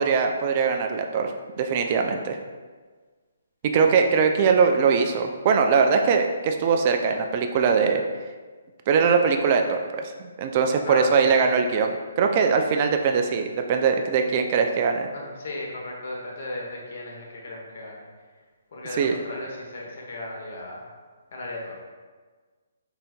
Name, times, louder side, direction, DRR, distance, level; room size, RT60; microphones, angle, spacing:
voice 1, 0.0-1.3 1.6-2.4 3.7-8.0 8.9-15.1 19.0-19.1, right 5 dB, 40° right, 4 dB, 0.3 m, -21 dB
voice 2, 10.8-11.4 15.1-18.0 18.7-20.9 21.3-21.8, left 2 dB, 55° left, -2 dB, 1.0 m, -35 dB
4.2 x 3.9 x 2.3 m, 1.4 s
figure-of-eight pair, 135°, 0 cm